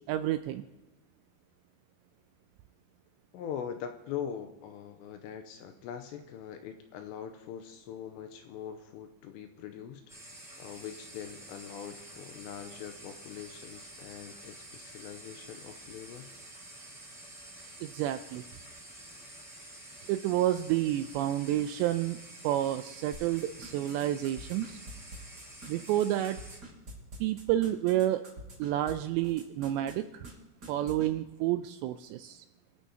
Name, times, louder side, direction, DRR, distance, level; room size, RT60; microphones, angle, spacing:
voice 1, 0.1-0.6 17.8-18.4 20.1-22.2 22.4-24.8 25.7-26.4 27.2-28.2 28.6-30.3 30.7-32.4, right 13 dB, 85° right, 9 dB, 2.5 m, -29 dB
voice 2, 3.3-10.0 10.6-16.3, left 8 dB, 85° left, 7 dB, 2.6 m, -42 dB
sound 1, 10.1-26.6, right 1 dB, ahead, 4.8 m, -49 dB
sound 2, 23.1-28.9 29.2-29.9 30.2-30.3 30.6-31.1, right 1 dB, 25° right, 2.6 m, -45 dB
27.0 x 9.1 x 2.8 m, 1.1 s
omnidirectional pair, 5.4 m